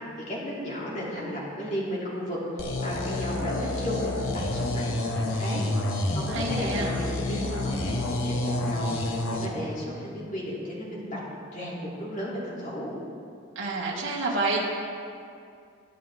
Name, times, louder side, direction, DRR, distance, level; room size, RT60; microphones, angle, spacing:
voice 1, 0.3-11.2 11.5-12.9, equal, 35° left, -6 dB, 3.1 m, -34 dB
sound 1, 2.6-9.5, left 1 dB, 75° left, 1.3 m, -29 dB
voice 2, 6.3-6.9 13.6-14.7, right 2 dB, 65° right, -4 dB, 2.4 m, -28 dB
23.0 x 8.6 x 3.7 m, 2.4 s
head